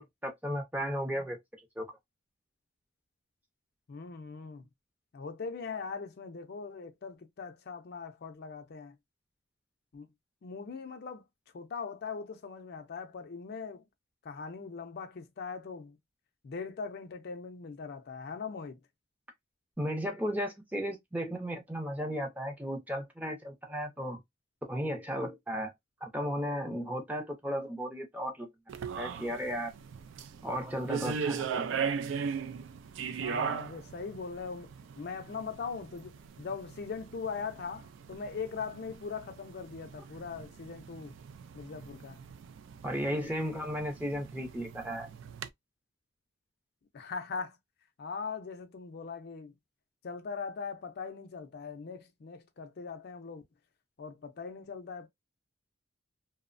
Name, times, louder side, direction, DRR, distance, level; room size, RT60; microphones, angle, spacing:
voice 1, 0.0-1.4 1.8-1.9 19.8-24.2 24.6-25.7 26.0-28.5 29.0-29.7 30.4-31.6 42.8-45.1, equal, 10° right, 0.5 m, -35 dB
voice 2, 3.9-4.6 5.1-8.9 9.9-10.1 10.4-11.2 11.5-13.9 14.2-16.0 16.4-18.8 33.2-41.1 41.5-42.2 46.9-47.6 48.0-49.5 50.0-53.4 54.0-55.1, left 5 dB, 50° left, 0.4 m, -40 dB
sound 1, 28.7-45.5, right 6 dB, 65° right, 0.3 m, -39 dB
2.9 x 2.0 x 2.4 m
head